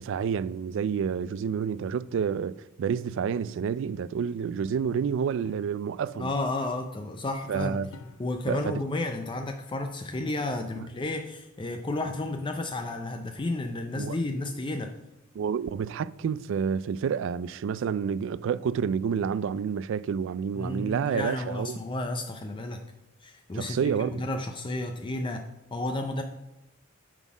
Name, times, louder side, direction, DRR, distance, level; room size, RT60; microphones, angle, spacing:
voice 1, 0.0-6.3 7.5-7.9 8.5-8.8 14.0-14.2 15.4-21.8 23.5-24.2, right 7 dB, 65° right, 0.3 m, -29 dB
sound 1, 5.4-5.8 7.9-8.5 10.1-10.5 12.5-13.1, left 2 dB, 80° left, 0.7 m, -51 dB
voice 2, 6.1-7.8 8.2-14.9 20.5-22.9 23.2-25.4 25.7-26.2, left 2 dB, 25° left, 0.5 m, -32 dB
9.1 x 4.1 x 6.0 m
head